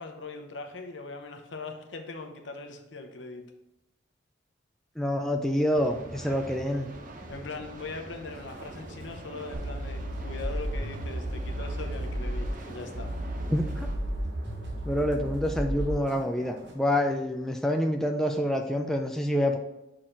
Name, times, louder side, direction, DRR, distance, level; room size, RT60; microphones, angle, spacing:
voice 1, 0.0-3.4 7.3-13.1, left 3 dB, 70° left, 5 dB, 0.8 m, -40 dB
voice 2, 5.0-6.9 13.5-13.9 14.9-19.6, equal, ahead, 2 dB, 0.3 m, -27 dB
sound 1, 5.8-13.9, right 1 dB, 40° right, 0.7 m, -44 dB
sound 2, 8.3-16.7, right 1 dB, 60° right, 1.1 m, -48 dB
sound 3, 9.5-12.5 12.9-16.0, right 1 dB, 80° right, 2.0 m, -33 dB
6.2 x 3.9 x 4.4 m, 0.93 s
head